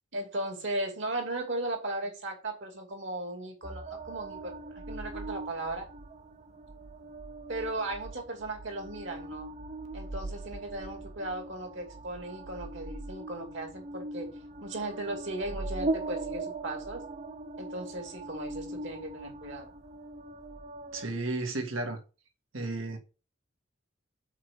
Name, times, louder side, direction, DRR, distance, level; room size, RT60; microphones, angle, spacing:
voice 1, 0.1-5.9 7.5-9.5 9.9-14.3 14.6-17.0 17.6-19.7, right 2 dB, 65° right, 2.6 m, -37 dB
sound 1, 3.6-21.1, right 2 dB, 35° right, 0.6 m, -40 dB
voice 2, 20.9-22.0 22.5-23.0, right 2 dB, 80° right, 1.8 m, -33 dB
5.8 x 4.7 x 6.5 m
head